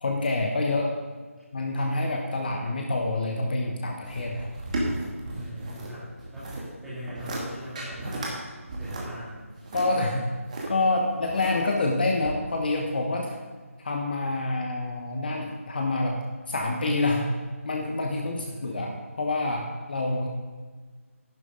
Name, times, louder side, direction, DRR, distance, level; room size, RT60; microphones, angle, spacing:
voice 1, 0.0-1.0 1.5-4.5 9.7-10.2 10.7-13.3 13.8-17.3 17.6-20.3, left 2 dB, 40° left, 2 dB, 1.1 m, -27 dB
sound 1, 4.0-5.9 6.2-6.7 7.0-7.4 7.8-8.3 8.7-10.7 11.2-11.8 12.2-12.3, right 2 dB, 30° right, 2.3 m, -34 dB
voice 2, 5.3-6.5 6.8-8.4 8.7-9.5 9.8-10.2 18.4-18.9, equal, 5° right, -12 dB, 2.8 m, -41 dB
11.5 x 11.0 x 3.9 m, 1.5 s
figure-of-eight pair, 160°, 8 cm